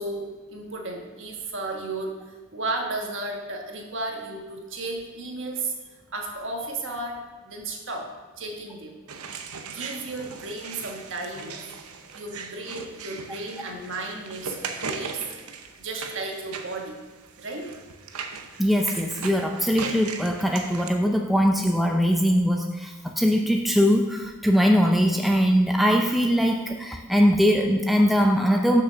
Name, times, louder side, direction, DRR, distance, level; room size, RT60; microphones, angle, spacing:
voice 1, 0.0-5.7 6.1-9.0 9.7-11.7 12.1-15.2 15.8-17.0 17.4-17.7, right 2 dB, 55° right, 1 dB, 1.4 m, -34 dB
sound 1, 9.1-20.9, right 5 dB, 85° right, 0.8 m, -38 dB
voice 2, 18.6-28.8, equal, ahead, 2 dB, 0.4 m, -21 dB
6.7 x 6.1 x 6.3 m, 1.2 s
head